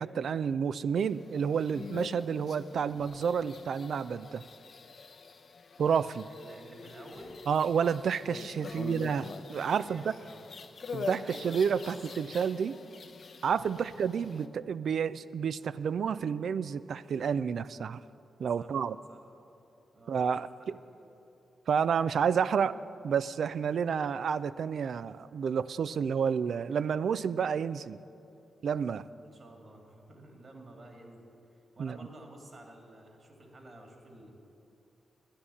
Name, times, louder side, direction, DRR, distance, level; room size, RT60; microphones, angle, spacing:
voice 1, 0.0-4.4 5.8-6.3 7.5-10.1 10.9-12.7 13.4-18.0 18.4-19.0 20.1-20.5 21.7-22.8 23.0-28.0 28.6-29.0 31.8-32.0, right 7 dB, 70° right, 15 dB, 0.3 m, -30 dB
sound 1, 1.0-14.5, left 4 dB, 60° left, 0.7 m, -45 dB
voice 2, 6.3-7.4 8.6-9.0 9.8-10.5 11.2-12.3 13.6-13.9 18.6-18.7 19.1-19.2 19.9-20.5 20.9-21.0 29.2-34.3, right 1 dB, 50° right, 2 dB, 2.6 m, -51 dB
11.5 x 9.6 x 7.1 m, 2.8 s
supercardioid pair, 40°, 0 cm